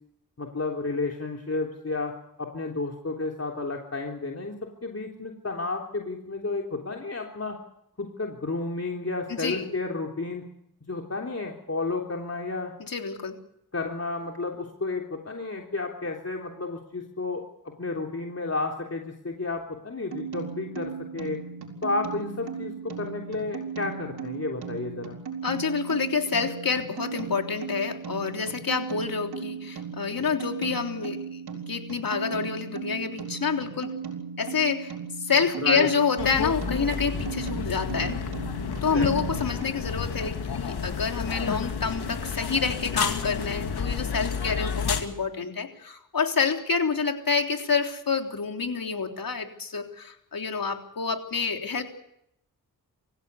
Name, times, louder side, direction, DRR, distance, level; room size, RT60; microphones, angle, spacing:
voice 1, 0.4-2.1 2.4-4.6 4.8-7.6 8.0-10.4 10.9-12.7 13.7-17.4 17.8-21.4 21.8-25.2 35.6-35.9 38.8-39.1, left 3 dB, 40° left, 1 dB, 3.5 m, -31 dB
voice 2, 9.3-9.7 12.8-13.4 25.4-31.4 31.7-34.0 34.4-34.9 35.2-38.1 38.8-51.8, left 5 dB, 65° left, 4 dB, 3.5 m, -28 dB
sound 1, 20.1-39.6, right 6 dB, 90° right, 4.3 m, -37 dB
sound 2, 36.2-45.0, left 6 dB, 85° left, 2.3 m, -30 dB
25.5 x 15.5 x 8.4 m, 0.77 s
cardioid pair, 45°, 37 cm